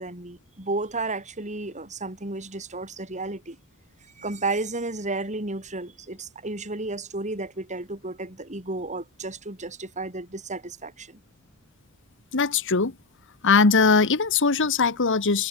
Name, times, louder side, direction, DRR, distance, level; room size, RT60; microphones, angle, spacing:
voice 1, 0.0-3.6 4.2-11.2, right 2 dB, 30° right, 4.9 m, -32 dB
voice 2, 12.3-12.9 13.4-15.5, left 4 dB, 55° left, 1.4 m, -20 dB
head